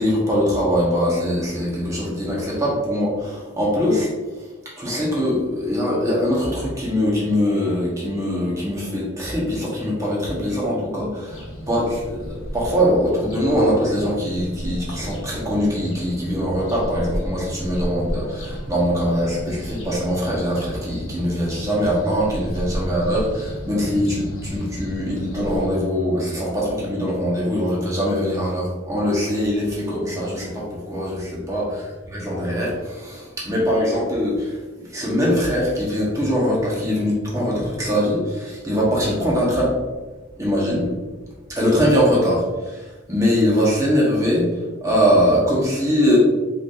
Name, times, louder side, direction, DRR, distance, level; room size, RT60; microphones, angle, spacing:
voice 1, 0.0-4.1 4.8-31.7 32.1-34.6 34.9-39.8 40.4-40.9 41.5-44.5 44.8-46.2, equal, 15° right, -5 dB, 1.2 m, -22 dB
sound 1, 11.3-25.7, equal, 75° left, 1.1 m, -33 dB
4.8 x 3.9 x 2.6 m, 1.2 s
head